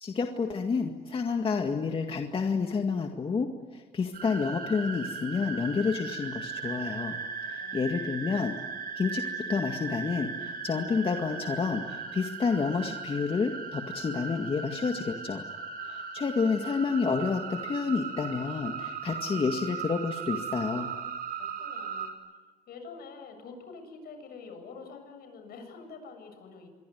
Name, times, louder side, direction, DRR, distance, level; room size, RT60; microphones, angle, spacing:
voice 1, 0.0-7.2 7.4-8.5 9.0-9.2 9.5-15.4 15.9-20.9, left 5 dB, 30° left, 4 dB, 2.0 m, -29 dB
sound 1, 4.1-22.1, right 5 dB, 60° right, 6.0 m, -37 dB
voice 2, 7.6-7.9 21.4-22.1 22.7-26.7, left 4 dB, 65° left, 6 dB, 7.8 m, -46 dB
27.0 x 22.5 x 9.5 m, 1.3 s
cardioid pair, 110°, 17 cm